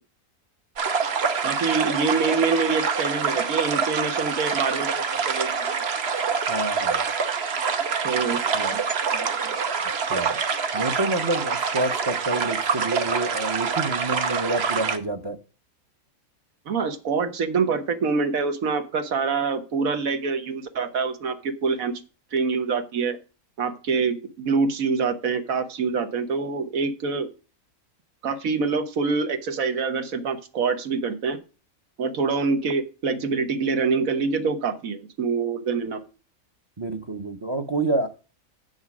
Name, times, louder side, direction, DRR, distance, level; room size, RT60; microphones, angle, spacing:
sound 1, 0.8-15.0, right 5 dB, 50° right, 1.1 m, -26 dB
voice 1, 1.4-5.8 8.0-8.8 9.1-9.6 16.7-22.0 22.3-23.2 23.6-27.3 28.2-31.4 32.0-36.0, right 5 dB, 80° right, 8 dB, 1.6 m, -26 dB
voice 2, 6.5-7.0 8.5-8.8 10.1-10.4 10.7-15.4 36.8-38.1, right 2 dB, 25° right, 8 dB, 0.7 m, -28 dB
8.4 x 6.5 x 6.1 m, 0.33 s
omnidirectional pair, 1.5 m